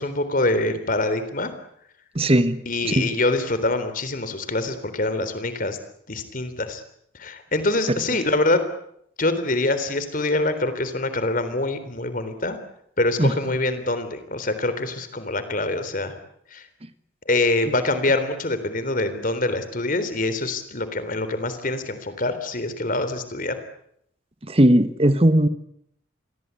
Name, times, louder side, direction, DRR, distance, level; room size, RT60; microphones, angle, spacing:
voice 1, 0.0-1.5 2.7-5.8 6.1-6.8 7.2-8.6 9.2-12.6 13.0-16.1 16.5-16.7 17.3-23.6, left 2 dB, 45° left, 11 dB, 3.7 m, -25 dB
voice 2, 2.1-3.1 13.2-13.6 24.5-25.5, right 1 dB, 30° right, 12 dB, 1.4 m, -19 dB
28.0 x 22.0 x 8.4 m, 0.72 s
head